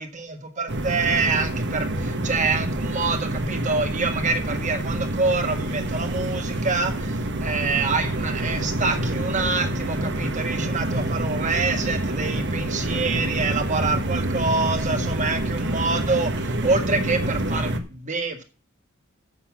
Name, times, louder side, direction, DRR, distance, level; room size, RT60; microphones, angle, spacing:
voice 1, 0.0-18.4, right 4 dB, 35° right, 6 dB, 1.6 m, -26 dB
sound 1, 0.7-17.8, right 1 dB, 55° right, 1.2 m, -27 dB
7.7 x 6.8 x 7.2 m, 0.34 s
head